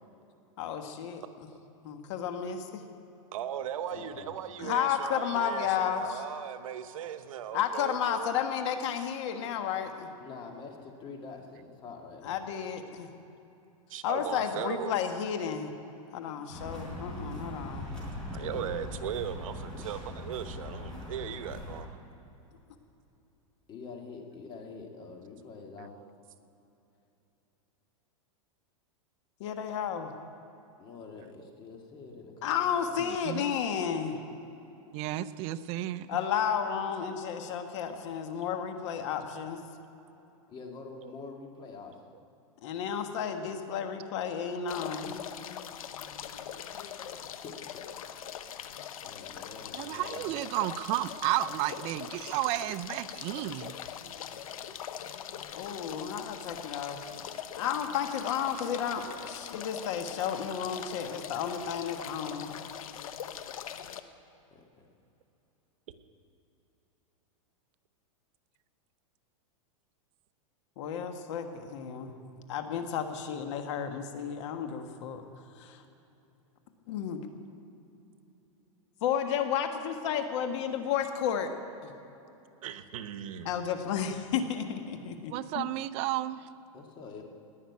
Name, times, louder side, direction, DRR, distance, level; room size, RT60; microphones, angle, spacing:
voice 1, 0.6-1.2 1.8-2.8 4.6-6.2 7.5-10.1 12.2-13.1 14.0-15.7 16.1-17.8 29.4-30.1 32.4-34.2 36.1-39.6 42.6-45.1 55.5-57.0 57.6-62.5 70.8-72.1 72.5-75.3 75.6-75.8 76.9-77.2 79.0-81.5 81.8-81.9 83.4-85.6, left 8 dB, 60° left, 6 dB, 1.5 m, -32 dB
voice 2, 3.3-8.3 13.9-14.9 18.3-21.9 26.0-26.1 31.4-31.6 32.1-32.5 33.5-33.6 33.9-34.6 35.8-36.0 37.6-37.9 41.0-41.3 41.6-41.8 43.3-43.5 44.0-44.1 44.9-45.2 52.2-52.3 54.6-54.7 56.4-56.7 77.4-77.6 82.6-83.5, right 10 dB, 75° right, 10 dB, 1.1 m, -39 dB
voice 3, 3.9-4.3 10.2-12.4 14.2-14.4 18.4-18.9 23.7-26.0 30.8-33.0 40.5-42.0 47.1-47.5 49.0-50.3 64.5-64.9 86.7-87.2, left 4 dB, 25° left, 2 dB, 1.9 m, -46 dB
sound 1, 16.5-21.8, left 1 dB, 5° left, 4.0 m, -40 dB
voice 4, 33.1-33.6 34.9-36.2 49.7-53.7 85.3-86.5, right 14 dB, 35° right, 13 dB, 0.5 m, -32 dB
sound 2, 44.7-64.0, left 9 dB, 85° left, 0.9 m, -42 dB
18.5 x 6.5 x 9.5 m, 2.9 s
supercardioid pair, 145°, 18 cm